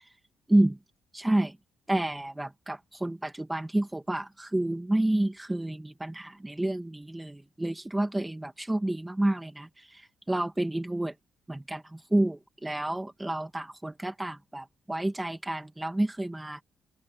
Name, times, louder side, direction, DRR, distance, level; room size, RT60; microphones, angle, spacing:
voice 1, 1.1-1.6 1.9-11.1 11.5-16.6, right 1 dB, 10° right, 1.6 m, -29 dB
cardioid pair, 90°, 0 cm